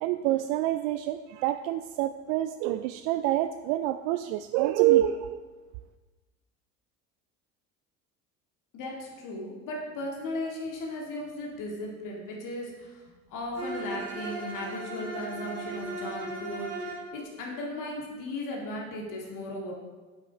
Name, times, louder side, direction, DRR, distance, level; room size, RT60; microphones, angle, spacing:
voice 1, 0.0-5.4, right 14 dB, 55° right, 10 dB, 0.4 m, -27 dB
voice 2, 8.7-13.0 13.3-19.7, left 1 dB, 45° left, -2 dB, 2.1 m, -36 dB
Bowed string instrument, 13.5-17.1, right 3 dB, 35° right, 2.8 m, -37 dB
8.9 x 8.3 x 3.4 m, 1.3 s
figure-of-eight pair, 65°, 43 cm